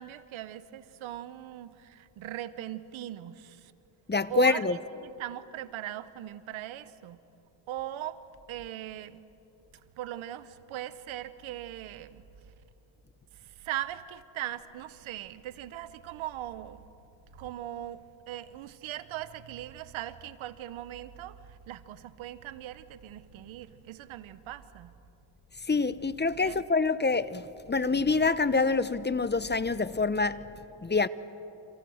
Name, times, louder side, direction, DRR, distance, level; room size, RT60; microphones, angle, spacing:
voice 1, 0.0-3.7 4.3-7.2 7.7-9.2 10.0-12.2 13.3-16.9 17.3-24.9 26.4-26.6, right 12 dB, 90° right, 1.1 m, -40 dB
voice 2, 4.1-4.8 25.7-30.4 30.8-31.1, left 4 dB, 20° left, 1.0 m, -26 dB
30.0 x 27.5 x 6.5 m
cardioid pair, 70°, 46 cm